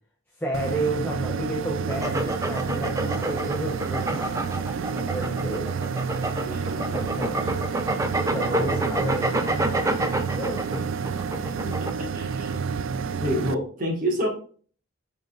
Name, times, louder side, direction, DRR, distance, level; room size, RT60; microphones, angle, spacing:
voice 1, 0.4-5.7 6.7-7.5 8.3-9.8 10.3-10.9, right 1 dB, 10° left, -2 dB, 0.8 m, -31 dB
sound 1, 0.5-13.5, right 6 dB, 80° right, 0.4 m, -30 dB
sound 2, 1.9-11.9, right 1 dB, 15° right, 0.4 m, -29 dB
voice 2, 6.4-7.0 8.5-9.1 11.6-11.7 12.0-12.6 13.2-14.3, equal, 40° right, 1 dB, 1.6 m, -29 dB
10.5 x 3.9 x 2.4 m, 0.44 s
head